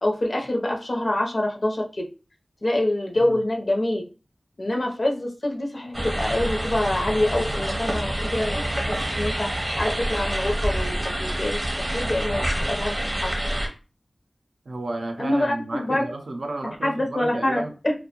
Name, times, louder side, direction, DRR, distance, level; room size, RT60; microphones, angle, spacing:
voice 1, 0.0-2.1 2.6-4.0 4.6-9.5 9.8-10.9 11.2-11.6 11.9-13.3 15.2-16.1 16.8-17.9, left 1 dB, 55° left, 1 dB, 0.5 m, -25 dB
sound 1, 5.9-13.7, right 1 dB, 35° right, 0.7 m, -27 dB
voice 2, 14.7-17.7, right 2 dB, 90° right, 4 dB, 0.4 m, -32 dB
2.5 x 2.1 x 2.8 m, 0.34 s
wide cardioid pair, 60°, 0 cm